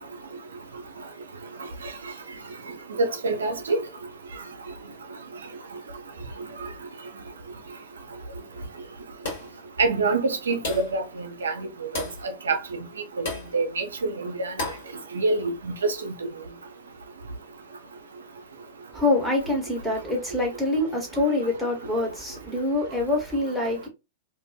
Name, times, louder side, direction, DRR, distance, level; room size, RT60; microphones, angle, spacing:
voice 1, 3.0-3.8 9.8-11.5 11.9-12.6 13.2-13.3 13.5-14.5 15.1-15.7 16.0-16.1, right 3 dB, 70° right, 0.5 m, -26 dB
sound 1, 9.2-9.6 10.6-11.0 11.9-12.2 13.2-13.5 14.6-14.9, left 2 dB, 55° left, 1.5 m, -32 dB
voice 2, 18.9-23.9, left 2 dB, ahead, 1.1 m, -25 dB
2.5 x 2.5 x 2.2 m
figure-of-eight pair, 95°, 0 cm